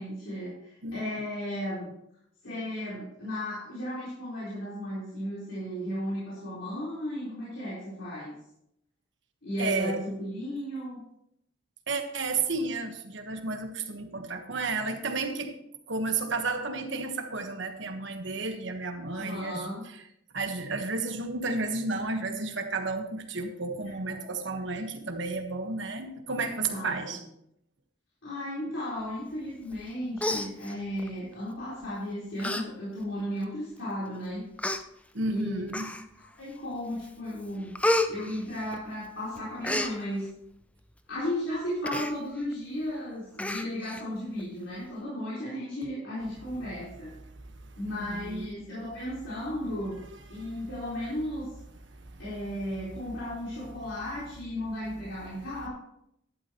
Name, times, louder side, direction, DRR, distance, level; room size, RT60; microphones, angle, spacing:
voice 1, 0.0-1.9 2.4-8.3 9.4-11.0 19.1-19.8 24.0-24.3 26.7-27.2 28.2-34.5 35.3-35.9 36.2-37.7 38.1-40.3 41.1-47.1 47.8-50.0 50.3-51.5 52.2-55.7, equal, 70° left, 4.2 m, -35 dB
voice 2, 9.6-10.0 11.9-15.5 15.9-19.7 20.3-27.2 35.2-35.9 47.9-48.5, right 3 dB, 65° right, 1.3 m, -32 dB
Human voice, 29.7-29.9 30.2-31.1 31.8-32.0 32.4-32.6 33.0-33.1 33.9-34.0 34.6-34.8 35.7-36.3 36.7-37.1 37.4-39.1 39.4-39.9 41.8-42.1 42.5-42.6 42.9-43.0 43.4-44.0 44.4-44.5, left 1 dB, 5° left, 0.5 m, -30 dB
12.0 x 11.5 x 3.0 m
head